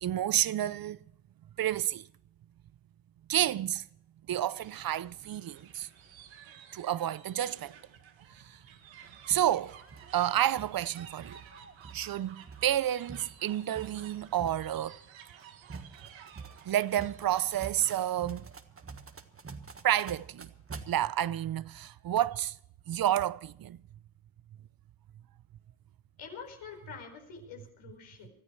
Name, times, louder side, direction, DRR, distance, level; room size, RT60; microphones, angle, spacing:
voice 1, 0.0-1.0 1.6-2.1 3.3-3.9 4.3-5.9 6.7-7.8 8.3-8.6 9.3-9.8 10.1-11.4 11.9-15.0 16.7-18.5 19.8-20.5 20.9-22.6 22.9-23.8, right 11 dB, 50° right, 0.6 m, -30 dB
sound 1, 4.5-18.0, right 8 dB, 80° right, 1.7 m, -53 dB
sound 2, 9.0-20.9, right 4 dB, 30° right, 1.5 m, -48 dB
voice 2, 26.2-28.3, left 6 dB, 80° left, 4.6 m, -46 dB
25.0 x 13.5 x 3.2 m
supercardioid pair, 60°, 46 cm